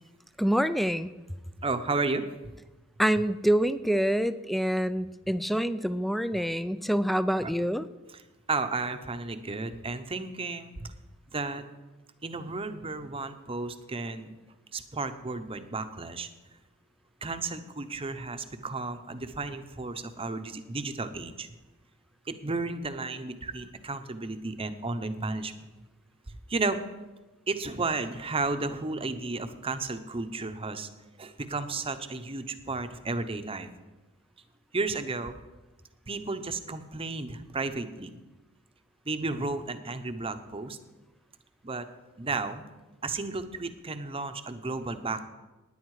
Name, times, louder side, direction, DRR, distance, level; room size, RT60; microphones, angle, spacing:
voice 1, 0.4-1.1 3.0-7.9, equal, ahead, 14 dB, 0.4 m, -26 dB
voice 2, 1.6-2.2 7.4-7.5 8.1-8.2 8.5-10.9 11.3-11.6 12.2-14.4 14.7-16.3 17.2-21.5 22.3-25.7 26.3-26.8 27.5-30.9 31.2-33.7 34.7-35.4 36.1-38.1 39.0-40.8 41.6-41.9 42.2-42.6 43.0-45.3, right 3 dB, 25° right, 9 dB, 0.8 m, -33 dB
17.0 x 10.0 x 4.8 m, 1.1 s
head